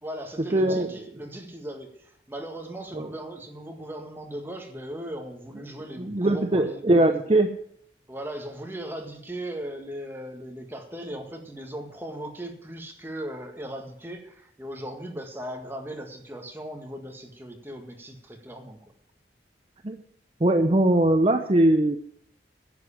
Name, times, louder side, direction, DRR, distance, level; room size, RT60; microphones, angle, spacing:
voice 1, 0.0-6.8 7.3-7.4 8.1-18.9, right 1 dB, 15° right, 3 dB, 1.8 m, -38 dB
voice 2, 0.5-0.9 2.9-3.1 6.0-7.5 19.8-20.0 20.4-22.0, right 1 dB, 35° right, 6 dB, 0.7 m, -21 dB
11.0 x 8.0 x 9.9 m, 0.68 s
head